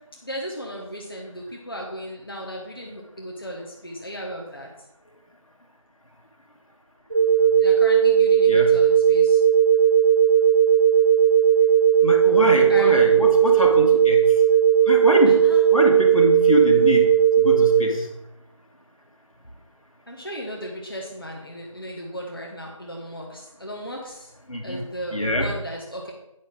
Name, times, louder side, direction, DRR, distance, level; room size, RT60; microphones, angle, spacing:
voice 1, 0.2-4.7 7.6-9.4 12.7-13.0 15.3-15.6 20.1-24.3 24.6-26.1, equal, 40° left, -1 dB, 1.2 m, -35 dB
sound 1, 7.1-17.8, right 8 dB, 40° right, 1.0 m, -17 dB
voice 2, 12.0-14.2 14.9-15.4 15.7-17.1 17.4-18.1 24.5-24.8 25.1-25.5, equal, 80° left, 1 dB, 2.0 m, -23 dB
9.3 x 6.0 x 3.7 m, 0.87 s
figure-of-eight pair, 175°, 17 cm